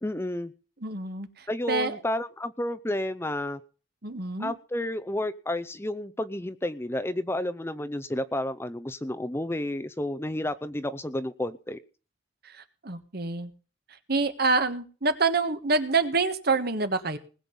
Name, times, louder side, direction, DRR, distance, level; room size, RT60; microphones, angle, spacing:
voice 1, 0.0-0.5 1.5-3.6 4.4-11.8, left 1 dB, 15° left, 12 dB, 0.6 m, -31 dB
voice 2, 0.8-2.0 4.0-4.5 12.4-13.5 14.1-17.2, right 3 dB, 55° right, 10 dB, 1.6 m, -27 dB
20.0 x 7.8 x 5.4 m, 0.36 s
head